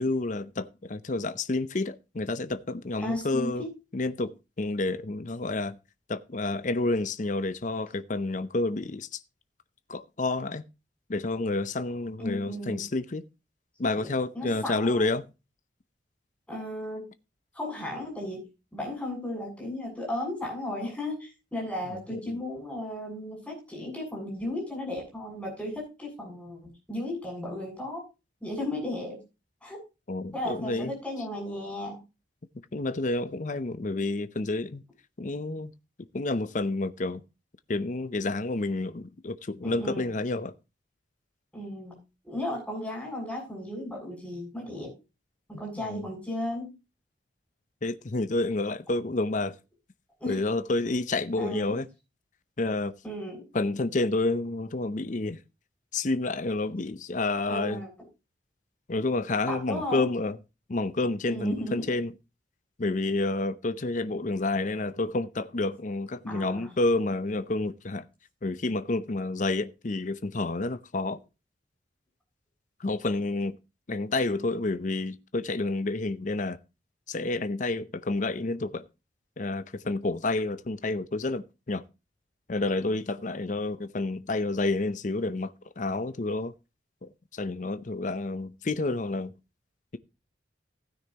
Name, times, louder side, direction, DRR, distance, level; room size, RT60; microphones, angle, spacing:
voice 1, 0.0-3.6 3.9-5.8 6.1-9.1 9.9-10.6 11.1-13.2 13.8-15.2 21.9-22.3 30.1-30.9 32.7-34.8 35.2-35.7 36.1-37.2 37.7-40.5 45.9-46.0 47.8-49.5 50.3-51.8 52.6-52.9 53.5-55.4 55.9-57.8 58.9-60.4 60.7-62.1 62.8-68.0 68.4-71.2 72.8-73.6 73.9-76.6 77.1-78.8 79.4-81.8 82.5-86.5 87.0-89.3, left 2 dB, 45° left, 0.6 m, -29 dB
voice 2, 3.0-3.7 12.2-12.8 13.9-15.1 16.5-17.1 17.5-28.0 28.4-29.2 29.6-29.8 30.3-32.0 39.6-40.2 41.5-42.0 42.2-44.9 45.5-46.7 50.2-50.4 51.4-51.8 53.0-53.4 57.5-57.9 59.5-60.1 61.3-61.9 66.3-66.7, left 1 dB, 5° left, 7.5 m, -35 dB
15.5 x 9.7 x 2.9 m
head